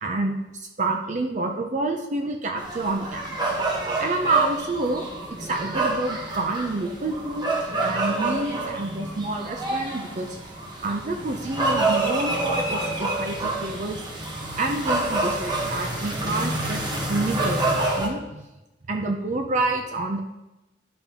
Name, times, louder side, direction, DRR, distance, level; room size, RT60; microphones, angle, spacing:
voice 1, 0.0-3.6 4.0-5.1 5.4-7.5 7.8-10.4 10.8-14.0 14.6-18.5 18.9-20.2, right 2 dB, 45° right, 4 dB, 0.6 m, -28 dB
sound 1, 2.6-18.1, right 2 dB, 25° right, 1.2 m, -27 dB
11.0 x 5.2 x 3.0 m, 1.0 s
head